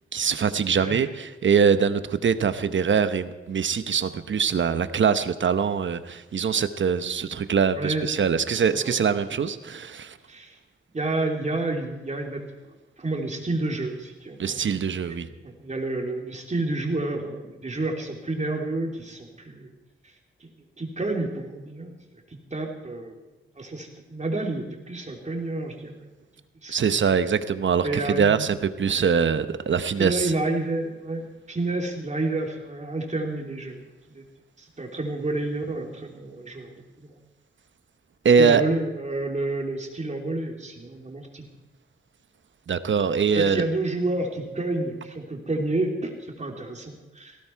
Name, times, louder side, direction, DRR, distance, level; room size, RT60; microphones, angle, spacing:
voice 1, 0.1-10.2 14.4-15.3 26.7-30.3 38.2-38.6 42.7-43.6, right 6 dB, 65° right, 12 dB, 0.9 m, -23 dB
voice 2, 0.7-1.1 7.8-8.1 8.8-9.4 10.3-10.5 10.9-12.4 13.0-14.9 15.2-19.7 20.0-20.1 20.4-20.5 20.8-21.9 22.3-23.2 23.6-26.1 26.6-26.8 27.8-28.5 30.0-33.8 34.1-34.2 34.6-37.2 38.4-41.5 43.3-47.4, right 2 dB, 35° right, 1 dB, 3.2 m, -30 dB
19.0 x 16.5 x 4.6 m, 1.2 s
wide cardioid pair, 100°, 21 cm